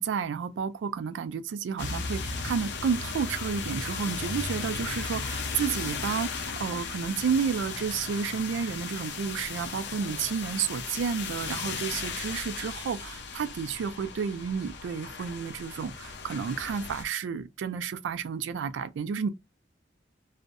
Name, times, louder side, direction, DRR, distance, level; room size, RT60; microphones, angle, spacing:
voice 1, 0.0-19.3, right 6 dB, 80° right, 0.3 m, -31 dB
sound 1, 1.8-17.1, left 5 dB, 65° left, 0.5 m, -36 dB
2.6 x 2.1 x 2.4 m
head